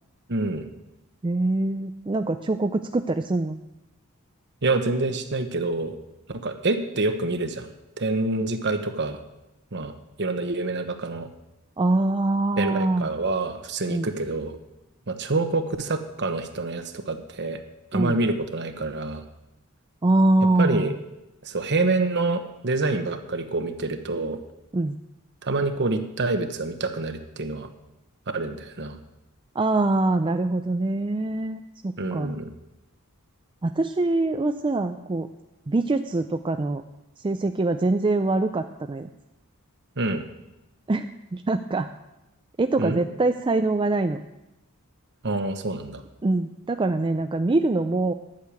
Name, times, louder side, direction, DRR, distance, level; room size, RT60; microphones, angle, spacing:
voice 1, 0.3-0.7 4.6-5.9 6.4-7.7 8.0-9.2 9.7-11.3 12.6-14.6 15.1-17.6 17.9-19.2 20.6-20.9 21.4-24.4 25.4-27.7 28.3-29.0 32.0-32.5 40.0-40.2 42.8-43.0 45.2-46.0, right 2 dB, 50° right, 8 dB, 1.1 m, -27 dB
voice 2, 1.2-3.6 11.8-13.1 13.9-14.1 17.9-18.2 20.0-21.0 24.7-25.0 29.6-32.3 33.6-35.3 35.7-36.8 37.2-39.1 40.9-41.1 41.3-41.9 42.6-44.2 46.2-48.1, right 2 dB, 20° right, 7 dB, 0.4 m, -24 dB
11.5 x 6.6 x 8.8 m, 0.95 s
head